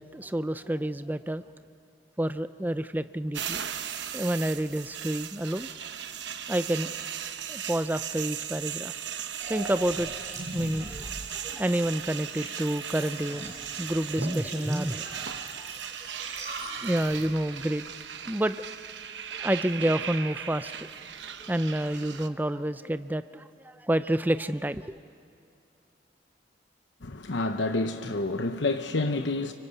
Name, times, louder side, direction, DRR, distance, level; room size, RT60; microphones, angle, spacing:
voice 1, 0.0-1.4 2.2-3.6 4.1-5.7 6.5-6.9 7.5-8.9 9.5-10.1 10.5-15.3 15.6-15.7 16.8-17.8 18.3-18.6 19.3-20.9 21.4-24.9, right 1 dB, 10° right, 0.5 m, -29 dB
sound 1, 3.3-22.3, right 8 dB, 80° right, 1.0 m, -38 dB
sound 2, 9.4-17.2, right 2 dB, 40° right, 5.5 m, -42 dB
voice 2, 27.0-29.5, left 2 dB, 85° left, 0.9 m, -28 dB
25.0 x 24.0 x 8.3 m
head